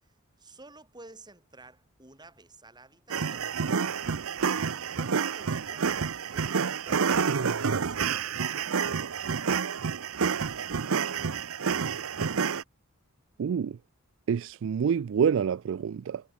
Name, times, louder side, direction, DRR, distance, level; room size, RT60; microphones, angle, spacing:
voice 1, 0.0-3.5 4.9-6.0 6.3-8.4, right 2 dB, 20° right, 7.8 m, -52 dB
sound 1, 3.1-12.6, right 6 dB, 85° right, 0.7 m, -29 dB
voice 2, 13.4-13.8 14.3-16.2, right 7 dB, 65° right, 0.3 m, -27 dB
head